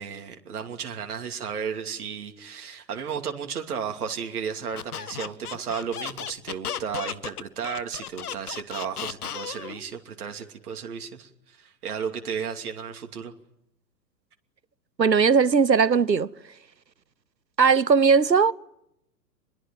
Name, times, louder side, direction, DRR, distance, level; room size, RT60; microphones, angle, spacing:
voice 1, 0.0-13.3, right 7 dB, 60° right, 3.0 m, -34 dB
Squeak, 4.7-9.8, left 9 dB, 65° left, 1.2 m, -35 dB
voice 2, 15.0-16.3 17.6-18.5, right 5 dB, 85° right, 1.0 m, -18 dB
27.5 x 22.0 x 9.1 m
figure-of-eight pair, 105°, 49 cm